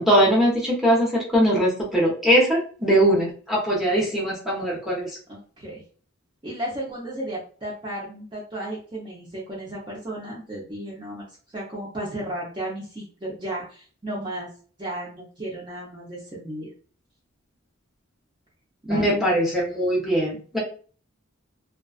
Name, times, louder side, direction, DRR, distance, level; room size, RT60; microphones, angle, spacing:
voice 1, 0.0-5.1 18.9-20.6, equal, ahead, -5 dB, 0.8 m, -21 dB
voice 2, 5.3-5.8 6.4-11.3 11.5-14.5 14.8-16.7 18.8-19.2, right 1 dB, 25° right, -6 dB, 0.6 m, -34 dB
2.4 x 2.3 x 2.3 m, 0.41 s
head